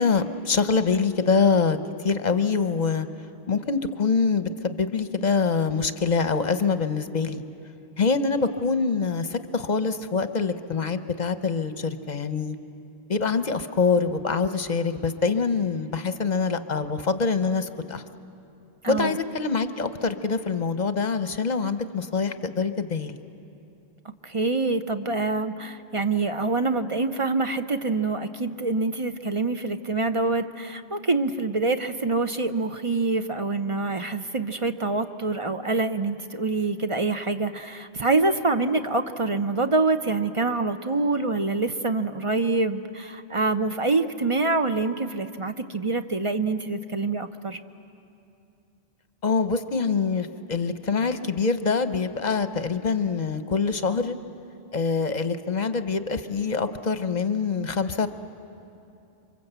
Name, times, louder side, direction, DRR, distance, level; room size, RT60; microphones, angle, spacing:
voice 1, 0.0-1.8 2.0-3.1 3.5-7.4 8.0-12.6 13.1-18.0 18.9-23.2 49.2-54.2 54.7-58.1, left 5 dB, 45° left, 10 dB, 0.9 m, -25 dB
voice 2, 18.8-19.2 24.2-47.6, right 3 dB, 35° right, 8 dB, 0.7 m, -25 dB
28.0 x 24.5 x 8.1 m, 2.7 s
omnidirectional pair, 1.1 m